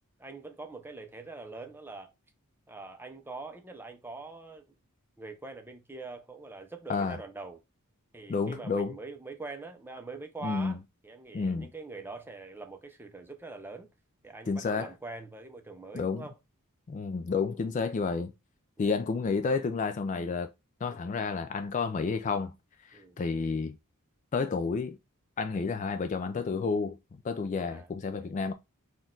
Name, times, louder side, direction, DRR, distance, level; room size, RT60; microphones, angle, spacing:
voice 1, 0.2-2.1 2.7-4.6 5.2-7.6 8.1-13.9 14.2-16.3 17.5-17.7 18.8-19.0 22.9-23.2 27.6-27.9 28.2-28.3, right 3 dB, 10° right, 0.6 m, -44 dB
voice 2, 8.3-8.9 10.4-10.8 11.3-11.7 14.5-14.9 15.9-16.2 16.9-18.3 18.8-20.5 20.8-22.5 22.8-23.8 24.3-25.0 25.4-28.5, left 4 dB, 35° left, 0.3 m, -30 dB
4.3 x 2.3 x 3.7 m
head